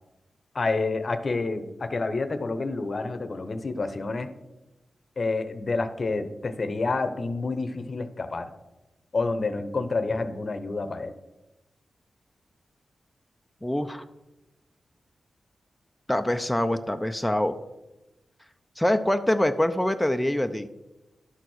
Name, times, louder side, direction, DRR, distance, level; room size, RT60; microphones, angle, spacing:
voice 1, 0.5-4.3 5.2-8.5 9.1-11.1, left 3 dB, 50° left, 10 dB, 0.8 m, -28 dB
voice 2, 13.6-14.0 16.1-17.6 18.8-20.7, left 1 dB, 5° left, 7 dB, 0.6 m, -24 dB
11.5 x 4.4 x 6.3 m, 1.0 s
cardioid pair, 50°, 0 cm